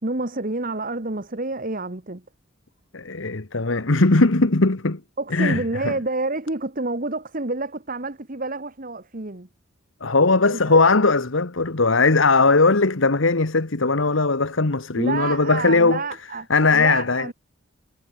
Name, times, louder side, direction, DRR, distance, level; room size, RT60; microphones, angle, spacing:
voice 1, 0.0-2.2 5.2-9.5 10.4-10.8 15.0-16.5 16.7-17.3, right 2 dB, 40° right, 1.5 m, -28 dB
voice 2, 2.9-5.0 5.3-6.0 10.0-16.0 16.5-17.3, left 3 dB, 65° left, 1.3 m, -19 dB
head